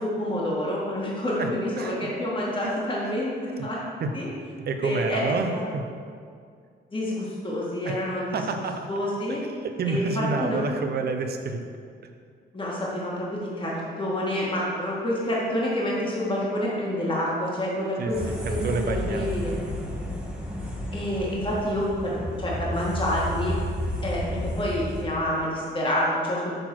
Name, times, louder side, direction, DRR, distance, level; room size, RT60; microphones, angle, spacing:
voice 1, 0.0-3.8 4.1-4.3 4.8-5.6 6.9-8.5 8.9-9.4 9.8-10.6 12.5-18.2 18.5-19.6 20.9-23.5 24.0-26.5, left 1 dB, 25° left, -5 dB, 1.8 m, -28 dB
voice 2, 1.8-2.1 2.6-2.7 3.6-3.7 4.0-4.1 4.7-5.8 7.8-8.0 8.3-8.9 9.6-11.6 18.0-18.1 18.5-19.3, right 4 dB, 55° right, 5 dB, 0.8 m, -28 dB
sound 1, 18.1-25.0, left 1 dB, 5° right, 1.4 m, -32 dB
6.6 x 4.0 x 6.1 m, 2.2 s
cardioid pair, 90°, 20 cm